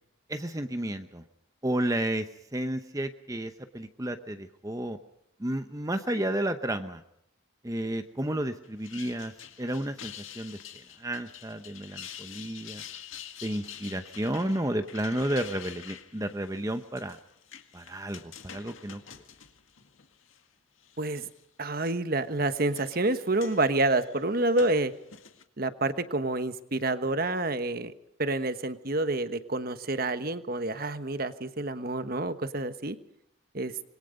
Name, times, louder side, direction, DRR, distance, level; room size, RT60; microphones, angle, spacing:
voice 1, 0.3-1.2 1.6-5.0 5.4-7.0 7.6-9.3 9.6-10.6 11.0-12.8 13.4-17.2 17.7-19.0, right 1 dB, 15° right, 8 dB, 0.8 m, -32 dB
sound 1, 8.6-20.4 20.8-21.4 22.2-25.4, left 9 dB, 70° left, 2.0 m, -47 dB
voice 2, 21.6-24.9 25.6-27.9 28.2-33.0 33.5-33.7, right 2 dB, 45° right, 11 dB, 1.2 m, -28 dB
26.5 x 22.0 x 5.3 m, 0.72 s
head